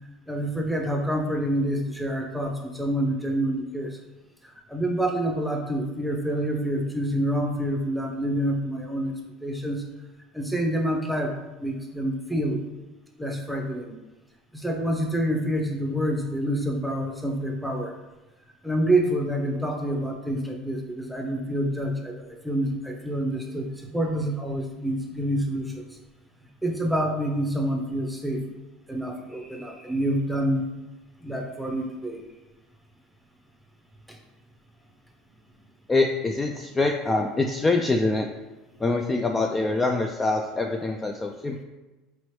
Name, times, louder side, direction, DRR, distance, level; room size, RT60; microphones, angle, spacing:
voice 1, 0.3-4.0 4.4-9.1 9.4-9.8 10.3-12.6 13.2-14.0 14.5-17.9 18.6-26.0 26.6-28.4 28.9-30.7 31.2-32.2 34.1-34.2, right 1 dB, ahead, 1 dB, 0.7 m, -27 dB
voice 2, 35.9-38.3 38.8-41.6, left 3 dB, 20° left, 3 dB, 0.3 m, -24 dB
4.1 x 3.0 x 3.1 m, 1.1 s
supercardioid pair, 105°, 0 cm